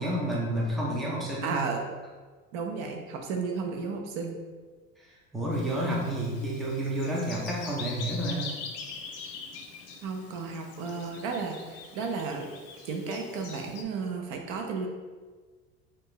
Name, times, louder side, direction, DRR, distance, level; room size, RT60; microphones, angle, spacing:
voice 1, 0.0-1.7 5.0-5.1 5.3-8.5, right 1 dB, ahead, -5 dB, 0.4 m, -30 dB
voice 2, 1.4-1.8 2.5-4.4 10.0-12.5 12.8-14.9, right 4 dB, 75° right, 3 dB, 0.7 m, -33 dB
Bird vocalization bird call bird song, 5.5-13.8, left 5 dB, 65° left, 0.6 m, -43 dB
4.6 x 2.5 x 3.0 m, 1.4 s
cardioid pair, 170°, 30 cm